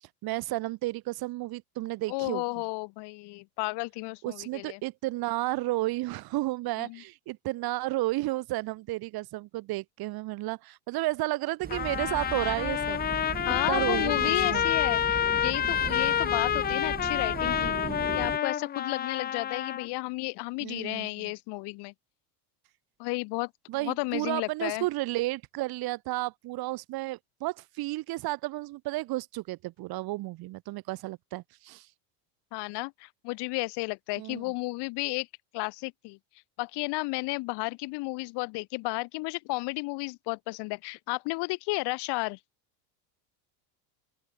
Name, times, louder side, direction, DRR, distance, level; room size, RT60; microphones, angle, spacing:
voice 1, 0.2-2.4 4.2-13.0 13.7-14.6 20.6-21.3 23.7-31.9 34.2-34.4, right 19 dB, 50° right, 5.1 m, -32 dB
voice 2, 2.1-4.8 6.8-7.0 13.4-17.7 18.1-21.9 23.0-23.5 23.8-24.9 32.5-35.3 35.5-36.2 36.6-42.4, left 25 dB, 60° left, 5.9 m, -33 dB
sound 1, 11.6-18.4, right 6 dB, 20° right, 3.9 m, -38 dB
Trumpet, 11.7-19.9, left 10 dB, 20° left, 0.6 m, -28 dB
open air
supercardioid pair, 135°, 46 cm